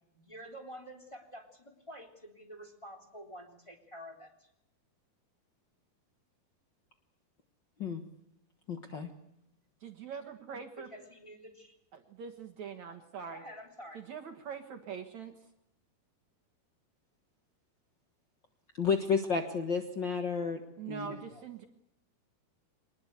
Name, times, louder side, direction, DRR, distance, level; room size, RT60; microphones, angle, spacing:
voice 1, 0.1-4.5 10.8-11.8 13.3-14.0, equal, 10° left, 2 dB, 3.1 m, -49 dB
voice 2, 8.7-9.1 18.8-20.6 20.9-21.2, left 5 dB, 80° left, 5 dB, 1.0 m, -31 dB
voice 3, 9.8-10.9 11.9-13.4 13.9-15.4 20.8-21.7, right 7 dB, 60° right, 6 dB, 2.3 m, -43 dB
24.5 x 20.0 x 8.1 m, 0.82 s
omnidirectional pair, 4.5 m